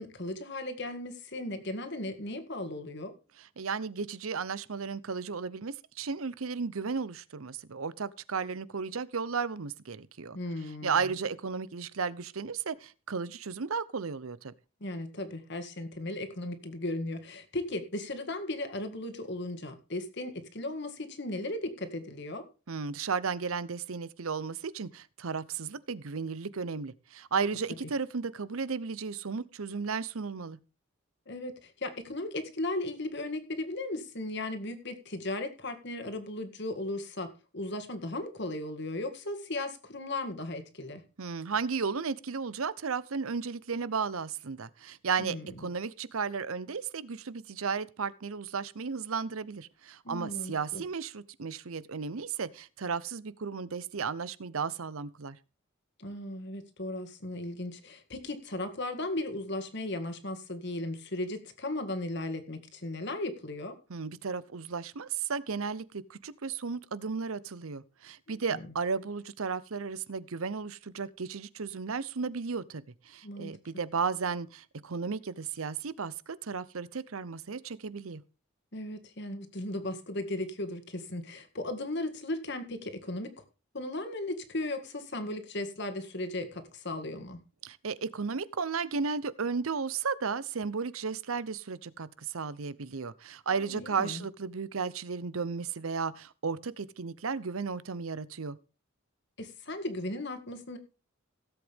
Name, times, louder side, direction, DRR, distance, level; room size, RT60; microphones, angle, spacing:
voice 1, 0.0-3.1 10.3-11.2 14.8-22.4 31.3-41.0 45.2-45.7 50.0-50.8 56.0-63.8 68.5-68.6 73.2-73.5 78.7-83.4 83.7-87.4 93.5-94.2 99.4-100.8, left 1 dB, 55° left, 1.9 m, -36 dB
voice 2, 3.4-10.4 10.8-14.5 22.7-30.6 41.2-55.4 63.9-78.2 87.6-98.6, right 5 dB, 80° right, 0.7 m, -34 dB
17.0 x 8.0 x 3.5 m
head